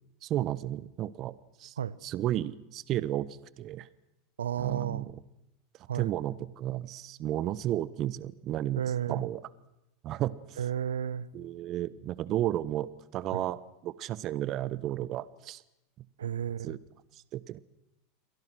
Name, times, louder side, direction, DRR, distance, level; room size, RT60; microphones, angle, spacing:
voice 1, 0.2-1.8 2.0-3.9 4.6-5.2 5.9-8.8 9.1-9.4 10.0-10.6 11.3-15.6 16.6-16.8 17.1-17.6, right 13 dB, 45° right, 1.2 m, -33 dB
voice 2, 4.4-5.1 5.9-6.1 8.8-9.2 10.6-11.3 13.3-13.4 16.2-16.8, right 9 dB, 85° right, 1.1 m, -32 dB
29.5 x 23.0 x 6.4 m
hypercardioid pair, 90°, 0 cm